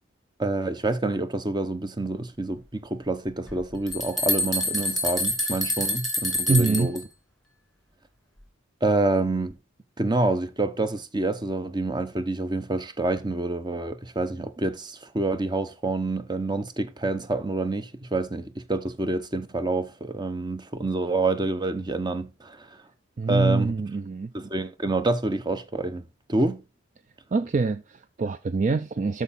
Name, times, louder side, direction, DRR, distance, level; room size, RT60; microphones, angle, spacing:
voice 1, 0.4-7.0 8.8-9.6 10.0-22.8 23.3-23.7 24.3-26.6, right 2 dB, 20° right, 0.8 m, -27 dB
sound 1, 3.5-3.6 3.9-7.0, left 2 dB, ahead, 2.5 m, -27 dB
voice 2, 6.5-6.9 23.2-24.3 27.3-29.2, right 3 dB, 35° right, 0.4 m, -25 dB
12.5 x 4.7 x 4.1 m
head